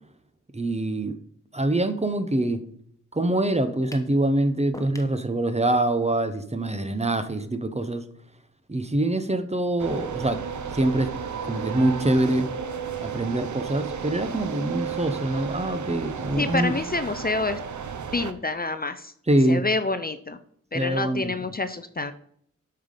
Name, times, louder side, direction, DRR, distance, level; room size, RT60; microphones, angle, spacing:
voice 1, 0.5-1.2 1.5-2.6 3.1-8.1 8.7-10.4 10.7-11.1 11.4-12.5 13.0-16.7 19.3-19.6 20.7-21.4, right 1 dB, 20° right, 10 dB, 0.8 m, -24 dB
sound 1, 3.9-4.2 4.7-5.2, left 1 dB, 10° left, 1.0 m, -41 dB
sound 2, 9.8-18.3, right 7 dB, 70° right, 0.8 m, -33 dB
voice 2, 16.3-17.6 18.1-19.1 19.5-20.4 20.7-22.1, left 3 dB, 30° left, 10 dB, 0.5 m, -27 dB
8.7 x 5.7 x 5.1 m, 0.66 s
wide cardioid pair, 100°, 30 cm